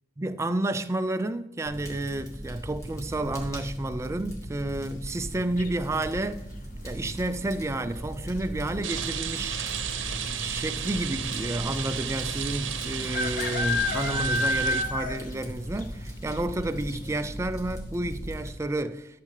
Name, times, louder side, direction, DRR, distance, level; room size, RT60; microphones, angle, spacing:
voice 1, 0.2-6.4 6.8-9.7 10.3-19.2, right 1 dB, 15° right, 0.3 m, -31 dB
Fire, 1.6-18.5, equal, 15° left, 1.7 m, -39 dB
sound 1, 5.6-6.1 7.9-8.3 8.5-8.6 8.8-9.4 10.1-10.2 10.5-10.6 12.1-12.2 13.1-15.4 15.8-15.9 16.4-16.5 16.9-17.0, left 2 dB, 45° left, 0.8 m, -29 dB
Rain, 8.8-14.8, right 7 dB, 90° right, 0.8 m, -33 dB
12.0 x 6.5 x 3.2 m
head